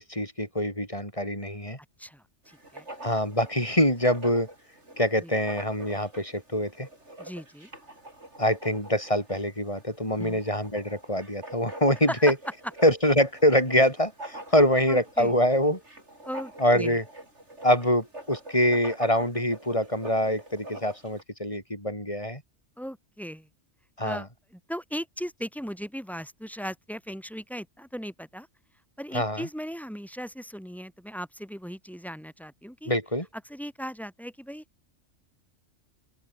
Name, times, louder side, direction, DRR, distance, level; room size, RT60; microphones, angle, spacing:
voice 1, 0.0-1.8 3.0-4.5 5.0-6.9 8.4-12.3 12.8-15.8 16.6-17.0 17.6-22.4 24.0-24.2 29.1-29.5 32.9-33.3, left 1 dB, 25° left, 7.4 m, -24 dB
voice 2, 2.0-2.9 5.2-5.3 7.2-7.7 10.2-10.4 12.1-12.2 14.9-15.3 16.2-17.0 22.8-23.5 24.0-28.5 29.0-32.9 33.5-34.6, equal, ahead, 6.8 m, -38 dB
Writing, 2.5-21.2, right 1 dB, 65° right, 8.1 m, -45 dB
open air
omnidirectional pair, 1.3 m